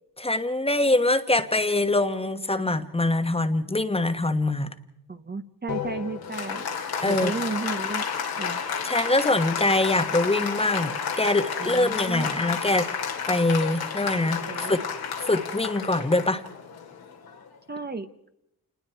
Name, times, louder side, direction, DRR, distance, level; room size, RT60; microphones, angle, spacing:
voice 1, 0.2-4.7 7.0-7.3 8.8-12.9 13.3-14.8 15.2-16.4, left 2 dB, 15° left, 9 dB, 1.3 m, -24 dB
voice 2, 5.1-6.7 7.1-8.1 8.4-8.6 11.6-12.5 14.5-14.9 17.7-18.3, right 4 dB, 25° right, 8 dB, 0.9 m, -34 dB
Applause, 5.7-17.6, left 6 dB, 90° left, 2.5 m, -31 dB
28.5 x 20.0 x 4.6 m, 0.82 s
cardioid pair, 85°, 36 cm